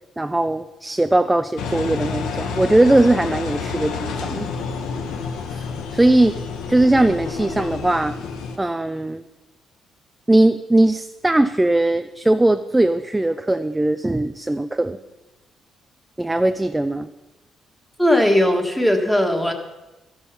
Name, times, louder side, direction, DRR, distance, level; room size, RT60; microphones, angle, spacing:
voice 1, 0.2-4.5 5.5-5.6 5.9-6.4 6.7-8.2 8.6-9.2 10.3-15.0 16.2-17.1, right 1 dB, 10° right, 9 dB, 0.4 m, -19 dB
Engine, 1.6-8.6, left 5 dB, 85° left, 0.9 m, -29 dB
voice 2, 18.0-19.5, left 1 dB, 5° left, 5 dB, 1.4 m, -18 dB
13.0 x 6.3 x 5.5 m, 1.1 s
cardioid pair, 90°, 0 cm